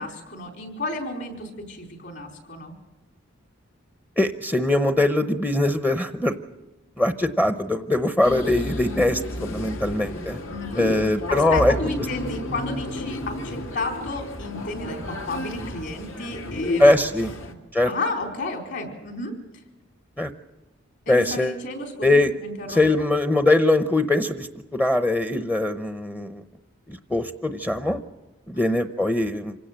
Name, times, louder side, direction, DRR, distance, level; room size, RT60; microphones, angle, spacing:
voice 1, 0.0-2.7 10.5-10.9 11.3-16.8 17.4-17.5 17.8-19.4 21.1-23.1 28.5-28.8, left 2 dB, 60° left, 3 dB, 4.5 m, -32 dB
voice 2, 4.2-6.3 7.0-10.4 10.8-11.7 16.8-17.3 17.7-17.9 20.2-20.3 21.1-21.6 22.0-22.3 22.7-26.4 26.9-28.0 28.5-29.6, left 2 dB, 10° left, 8 dB, 0.7 m, -21 dB
sound 1, 8.2-17.5, left 1 dB, 75° left, 2.3 m, -32 dB
26.5 x 17.0 x 7.5 m, 1.1 s
head